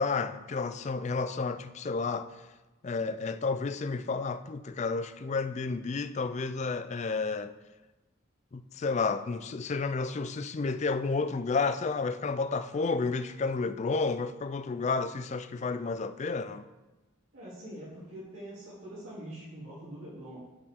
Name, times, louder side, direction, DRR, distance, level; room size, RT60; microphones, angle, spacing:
voice 1, 0.0-2.3 2.8-7.5 8.5-16.6, left 4 dB, 35° left, 0.3 m, -31 dB
voice 2, 17.3-20.4, right 1 dB, 75° right, 2.8 m, -44 dB
13.0 x 4.9 x 3.7 m
head